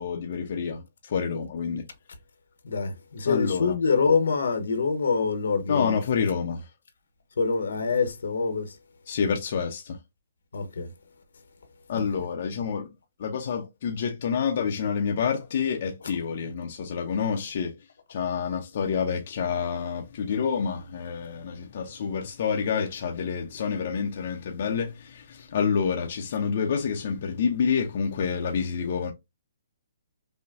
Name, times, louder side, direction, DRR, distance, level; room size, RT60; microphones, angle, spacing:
voice 1, 0.0-1.8 3.2-3.8 5.7-6.7 9.1-10.0 11.9-12.9 13.2-17.8 18.1-29.1, left 6 dB, 55° left, 0.7 m, -28 dB
voice 2, 2.6-6.0 7.4-8.8 10.5-10.9 11.9-12.0, left 4 dB, 80° left, 1.1 m, -25 dB
5.6 x 2.2 x 2.5 m
hypercardioid pair, 150°, 0 cm